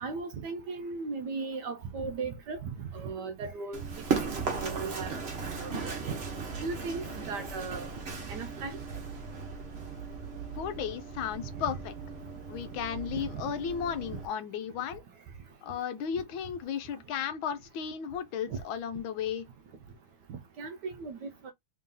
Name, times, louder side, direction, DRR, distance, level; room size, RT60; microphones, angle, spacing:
voice 1, 0.0-3.8 4.1-5.1 5.5-6.0 6.6-7.9 8.3-8.8 13.3-13.4 18.5-18.6 20.3-21.5, right 4 dB, 70° right, 1.1 m, -37 dB
Run, 3.7-14.3, right 5 dB, 45° right, 0.9 m, -37 dB
voice 2, 10.5-11.9 12.5-15.0 15.6-19.5, left 8 dB, 80° left, 1.4 m, -34 dB
3.5 x 2.7 x 3.7 m
omnidirectional pair, 2.3 m